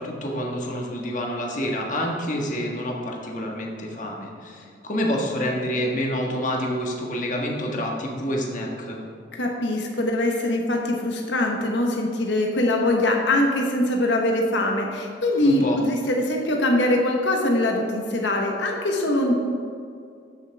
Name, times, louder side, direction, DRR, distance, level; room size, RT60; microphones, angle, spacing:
voice 1, 0.0-9.0 15.4-15.8, equal, 45° left, 0 dB, 1.5 m, -28 dB
voice 2, 9.3-19.3, left 1 dB, 90° left, 1 dB, 1.2 m, -22 dB
14.0 x 6.9 x 3.5 m, 2.3 s
head